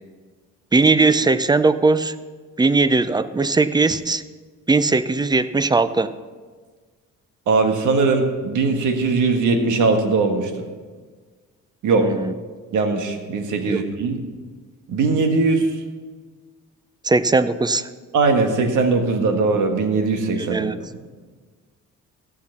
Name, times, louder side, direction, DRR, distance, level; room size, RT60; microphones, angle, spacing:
voice 1, 0.7-2.1 2.6-4.2 4.7-6.1 12.0-12.3 13.6-13.9 17.0-17.9 20.4-20.8, right 3 dB, 15° right, 13 dB, 0.5 m, -19 dB
voice 2, 7.5-10.7 11.8-12.1 12.7-14.2 14.9-15.7 18.1-20.7, right 3 dB, 80° right, 5 dB, 1.6 m, -20 dB
16.5 x 5.9 x 5.9 m, 1.5 s
cardioid pair, 90°, 30 cm